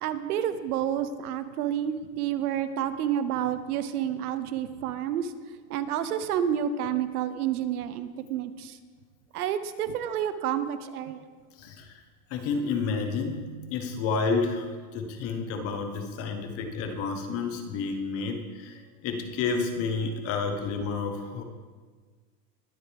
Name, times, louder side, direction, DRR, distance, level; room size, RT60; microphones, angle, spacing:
voice 1, 0.0-8.8 9.3-11.3, right 9 dB, 65° right, 12 dB, 1.0 m, -29 dB
voice 2, 11.6-11.9 12.3-21.4, left 4 dB, 30° left, 6 dB, 1.1 m, -30 dB
21.0 x 7.9 x 3.5 m, 1.5 s
supercardioid pair, 155°, 48 cm